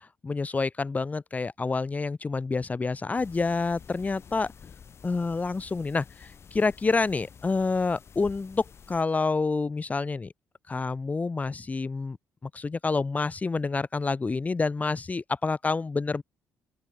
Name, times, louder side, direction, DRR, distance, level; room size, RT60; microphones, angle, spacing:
voice 1, 0.2-4.5 5.0-10.3 10.7-12.2 12.4-16.2, left 4 dB, 25° left, 1.0 m, -28 dB
sound 1, 3.1-9.0, left 7 dB, 45° left, 3.8 m, -50 dB
open air
supercardioid pair, 75°, 6 cm